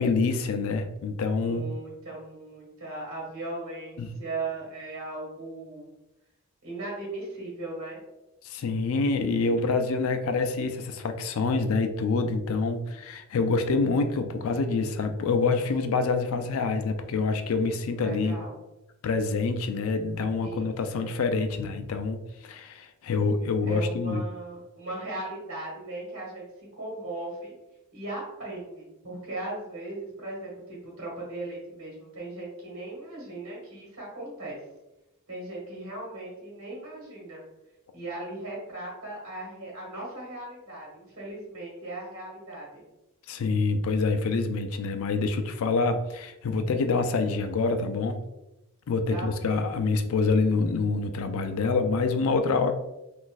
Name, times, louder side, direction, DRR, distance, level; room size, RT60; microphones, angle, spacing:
voice 1, 0.0-1.7 4.0-4.1 8.4-18.4 19.0-24.2 43.3-48.2 48.9-52.7, left 4 dB, 70° left, 7 dB, 0.4 m, -26 dB
voice 2, 1.4-5.9 6.6-8.0 17.9-18.6 20.4-21.1 23.6-26.4 26.8-27.5 27.9-34.6 35.3-37.4 37.9-42.8 49.1-49.8, right 2 dB, 65° right, -3 dB, 1.2 m, -38 dB
3.9 x 2.5 x 2.4 m, 0.95 s
head